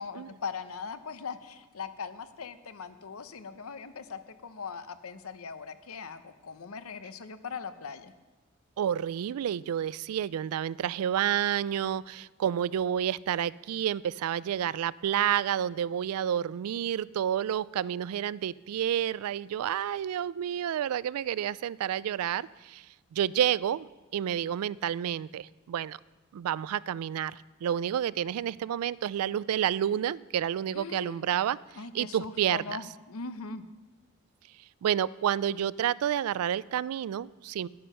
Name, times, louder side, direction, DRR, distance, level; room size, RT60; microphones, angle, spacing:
voice 1, 0.0-8.1 30.7-31.2 31.8-33.6, left 5 dB, 80° left, 11 dB, 0.7 m, -40 dB
voice 2, 8.8-22.9 23.1-26.0 26.3-31.6 31.9-32.8 34.8-37.7, right 10 dB, 90° right, 21 dB, 0.3 m, -30 dB
11.0 x 9.5 x 5.6 m, 1.2 s
head